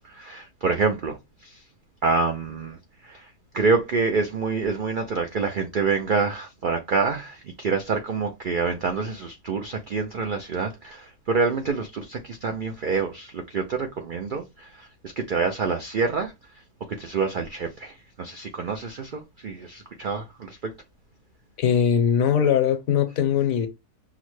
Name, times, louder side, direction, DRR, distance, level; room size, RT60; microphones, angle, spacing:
voice 1, 0.0-1.6 2.0-16.3 16.9-20.7, right 4 dB, 80° right, 0.4 m, -27 dB
voice 2, 21.6-23.7, left 8 dB, 70° left, 1.2 m, -21 dB
5.8 x 2.1 x 3.0 m
omnidirectional pair, 1.6 m